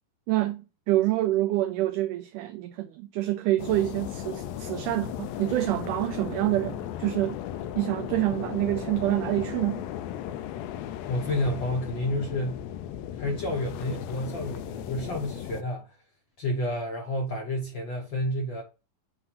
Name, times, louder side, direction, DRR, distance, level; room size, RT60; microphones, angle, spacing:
voice 1, 0.3-7.4 7.8-9.9, right 16 dB, 80° right, 1.9 m, -27 dB
sound 1, 3.6-15.6, left 11 dB, 85° left, 2.3 m, -36 dB
voice 2, 11.1-12.6 13.2-15.9 16.4-18.6, left 1 dB, 65° left, 1.1 m, -30 dB
7.7 x 2.7 x 5.5 m
omnidirectional pair, 4.0 m